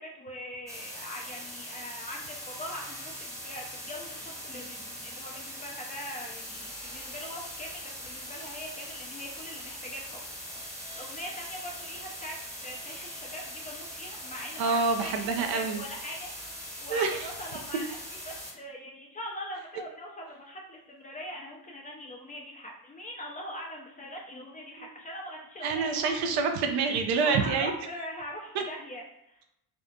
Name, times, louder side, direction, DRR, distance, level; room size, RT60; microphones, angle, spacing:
voice 1, 0.0-10.2 10.9-18.0 18.3-26.1 27.2-29.4, left 1 dB, 20° left, -1 dB, 0.4 m, -42 dB
sound 1, 0.7-18.5, equal, 5° right, 0.8 m, -41 dB
voice 2, 14.6-15.8 16.9-17.3 24.8-24.9 25.6-27.7, right 4 dB, 55° right, 5 dB, 0.5 m, -27 dB
2.6 x 2.4 x 2.2 m, 0.81 s
figure-of-eight pair, 50°, 48 cm